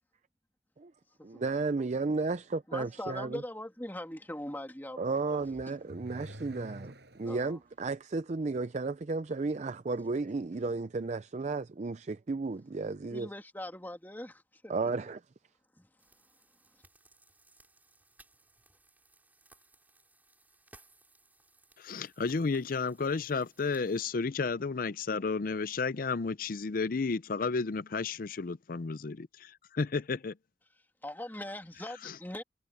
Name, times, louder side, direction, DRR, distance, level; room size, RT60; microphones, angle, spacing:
voice 1, 1.2-3.4 5.0-13.3 14.7-15.2, right 3 dB, 40° right, 0.5 m, -33 dB
voice 2, 2.7-5.4 7.2-7.6 13.1-14.7 15.8-15.9 31.0-32.4, left 1 dB, 10° left, 2.7 m, -41 dB
Car / Accelerating revving vroom, 5.4-7.6, equal, 65° right, 6.7 m, -47 dB
sound 1, 16.0-24.0, right 2 dB, 10° right, 6.1 m, -63 dB
voice 3, 21.8-30.4 32.0-32.2, left 4 dB, 50° left, 0.5 m, -32 dB
head